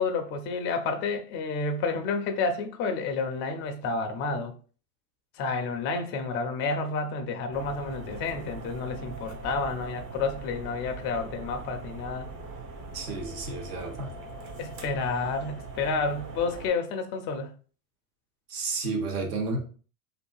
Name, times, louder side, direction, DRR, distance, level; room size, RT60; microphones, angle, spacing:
voice 1, 0.0-4.6 5.4-12.3 14.6-17.5, left 4 dB, 30° left, 0.3 m, -30 dB
sound 1, 7.5-16.7, right 3 dB, 40° right, 0.8 m, -41 dB
voice 2, 12.9-14.1 18.5-19.6, right 3 dB, 80° right, 1.0 m, -31 dB
2.5 x 2.5 x 2.3 m
hypercardioid pair, 85°, 46 cm